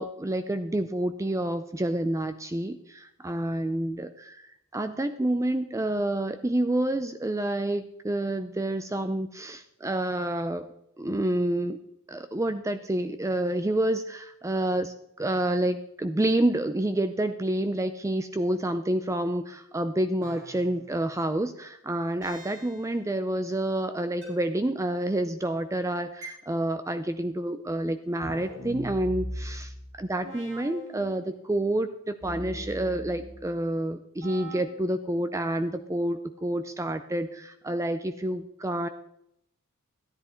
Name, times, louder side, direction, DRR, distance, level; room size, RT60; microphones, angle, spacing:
voice 1, 0.0-4.5 4.7-10.7 11.0-11.8 12.1-29.7 30.0-38.9, right 1 dB, 15° right, 10 dB, 0.5 m, -28 dB
sound 1, 20.2-21.0 22.2-23.0 24.2-24.3 26.2-26.3 28.2-31.6 32.2-33.6 34.2-34.6, equal, 60° right, 5.7 m, -40 dB
14.0 x 10.5 x 4.4 m, 0.77 s
head